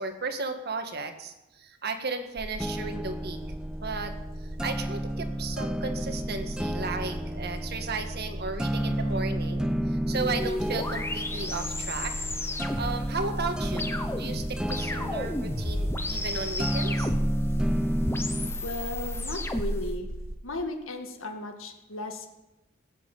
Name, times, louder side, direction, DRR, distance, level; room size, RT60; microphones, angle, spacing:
voice 1, 0.0-3.4 3.8-4.2 4.4-12.2 12.6-17.1, right 3 dB, 55° right, 7 dB, 1.7 m, -35 dB
sound 1, 2.4-20.3, right 1 dB, 80° right, 1.4 m, -38 dB
sound 2, 2.6-18.6, equal, 5° right, 0.4 m, -32 dB
sound 3, 10.1-19.9, left 1 dB, 10° left, 1.1 m, -33 dB
voice 2, 18.6-20.1 20.4-22.3, left 2 dB, 80° left, 5 dB, 2.1 m, -35 dB
20.0 x 7.7 x 8.4 m, 0.99 s
head